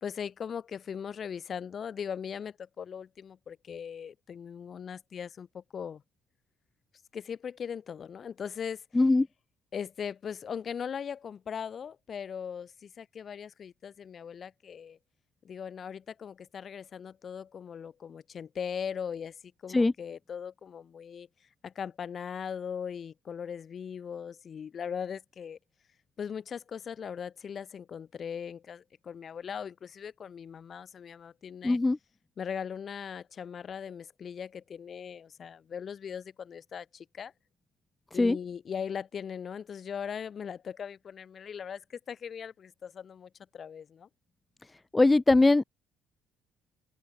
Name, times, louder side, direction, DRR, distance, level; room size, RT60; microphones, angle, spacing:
voice 1, 0.0-6.0 7.1-8.8 9.7-15.0 15.4-21.3 21.6-25.6 26.2-31.8 32.4-37.3 38.1-44.1, left 7 dB, 30° left, 2.3 m, -39 dB
voice 2, 8.9-9.3 19.7-19.9 31.6-32.0 38.1-38.4 44.9-45.6, left 2 dB, 10° left, 0.6 m, -21 dB
open air
cardioid pair, 160°, 0 cm